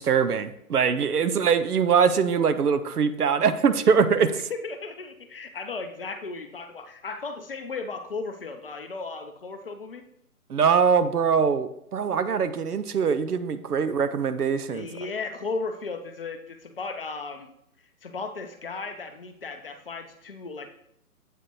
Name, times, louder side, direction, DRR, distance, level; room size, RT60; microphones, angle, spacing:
voice 1, 0.0-4.3 10.5-14.9, right 6 dB, 80° right, 12 dB, 0.7 m, -22 dB
voice 2, 4.3-10.0 14.7-17.5 18.0-20.7, left 4 dB, 40° left, 7 dB, 0.6 m, -35 dB
7.9 x 4.9 x 3.2 m, 0.73 s
figure-of-eight pair, 140°, 45 cm